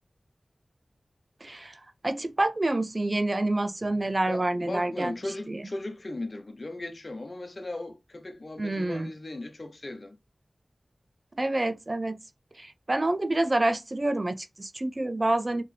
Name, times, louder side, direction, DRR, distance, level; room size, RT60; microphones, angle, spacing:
voice 1, 1.4-5.1 5.5-5.6 8.6-9.1 11.4-12.2 12.6-15.6, right 2 dB, 40° right, 0.5 m, -28 dB
voice 2, 4.3-10.2, left 2 dB, 50° left, 1.0 m, -37 dB
4.5 x 3.3 x 3.4 m
wide cardioid pair, 50°, 0 cm